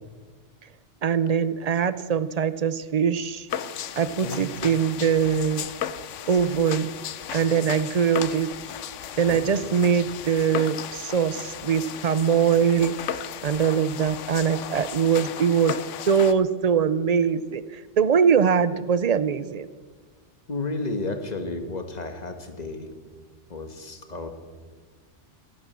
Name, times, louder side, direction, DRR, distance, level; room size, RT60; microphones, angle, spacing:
voice 1, 1.0-3.5 4.0-5.7 6.3-6.9 7.3-8.5 9.2-15.8 16.1-19.7, right 7 dB, 50° right, 15 dB, 0.5 m, -22 dB
sound 1, 3.5-16.3, left 9 dB, 90° left, 1.0 m, -35 dB
voice 2, 4.0-4.4 9.3-9.7 20.5-22.9 23.5-24.3, left 2 dB, 35° left, 7 dB, 1.5 m, -32 dB
14.5 x 11.0 x 7.4 m, 1.5 s
omnidirectional pair, 1.2 m